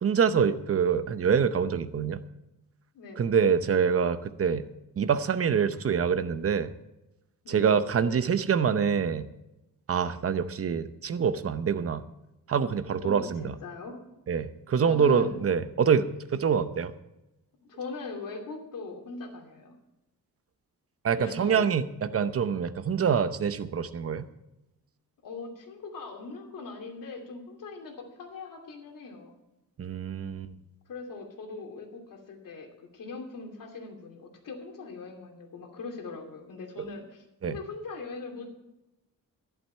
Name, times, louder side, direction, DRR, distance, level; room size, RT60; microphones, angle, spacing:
voice 1, 0.0-2.2 3.2-4.6 5.0-6.7 7.5-9.3 9.9-12.0 12.5-13.5 14.3-16.9 21.0-24.3 29.8-30.5 36.8-36.9 37.4-37.6, right 7 dB, 45° right, 12 dB, 0.7 m, -25 dB
voice 2, 2.9-3.4 7.4-7.8 13.0-13.9 14.7-15.5 17.7-19.7 21.1-21.7 25.2-29.3 30.9-38.5, left 4 dB, 70° left, 2 dB, 2.8 m, -41 dB
11.5 x 11.0 x 4.5 m, 0.94 s
wide cardioid pair, 150°, 34 cm